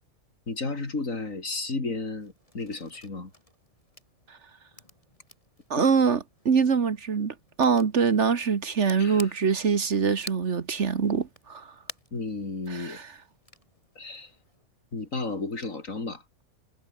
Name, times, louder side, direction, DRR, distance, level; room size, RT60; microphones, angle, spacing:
voice 1, 0.5-3.3 5.8-5.9 9.0-9.3 12.1-13.0 14.0-14.3 14.9-16.2, left 3 dB, 70° left, 4.0 m, -33 dB
sound 1, 2.1-14.7, left 1 dB, 25° left, 6.5 m, -51 dB
voice 2, 5.7-6.2 6.4-11.7 12.7-13.0, right 6 dB, 55° right, 1.6 m, -24 dB
omnidirectional pair, 1.4 m